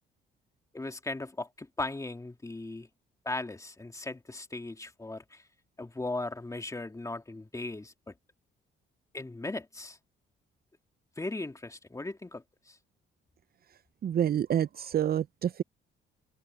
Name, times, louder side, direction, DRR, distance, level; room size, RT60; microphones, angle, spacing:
voice 1, 0.7-2.9 3.3-5.4 5.8-8.1 9.1-10.0 11.2-12.8, left 2 dB, 15° left, 2.2 m, -38 dB
voice 2, 14.0-15.6, right 10 dB, 50° right, 0.6 m, -28 dB
cardioid pair, 90°, 20 cm